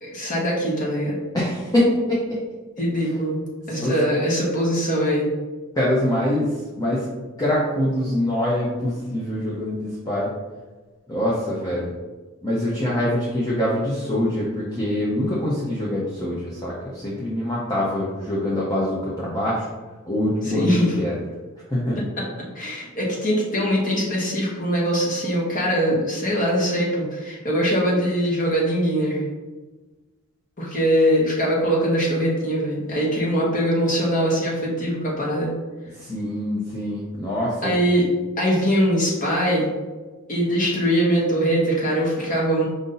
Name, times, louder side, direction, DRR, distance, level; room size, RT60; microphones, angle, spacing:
voice 1, 0.0-1.2 2.8-5.3 20.5-20.9 22.5-29.2 30.6-35.5 37.6-38.1 38.4-39.7 40.3-42.7, equal, 40° left, -4 dB, 1.3 m, -22 dB
voice 2, 1.3-2.4 3.7-4.0 5.7-7.1 7.4-10.3 11.1-11.9 12.4-19.7 20.1-21.2 21.7-22.0 35.9-37.7, left 1 dB, 15° left, -7 dB, 0.7 m, -24 dB
5.0 x 2.7 x 3.9 m, 1.2 s
head